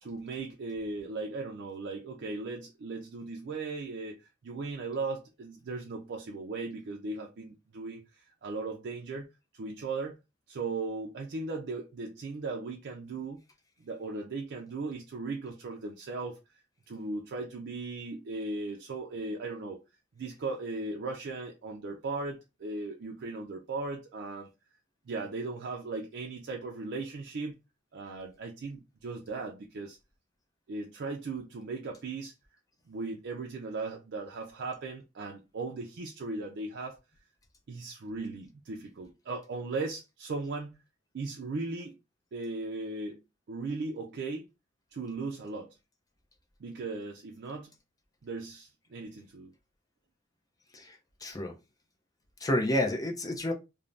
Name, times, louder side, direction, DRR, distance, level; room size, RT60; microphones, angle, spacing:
voice 1, 0.0-9.3 9.5-10.2 10.5-13.4 13.8-16.4 16.9-19.8 20.2-24.5 25.1-27.6 27.9-30.0 30.7-32.3 32.9-37.0 37.7-40.8 41.1-42.0 42.3-43.2 43.5-44.5 44.9-45.8 46.6-47.7 48.2-49.5, right 3 dB, 60° right, 0.4 m, -37 dB
voice 2, 50.7-51.5 52.4-53.5, left 1 dB, 20° left, 0.5 m, -30 dB
2.5 x 2.0 x 3.2 m
head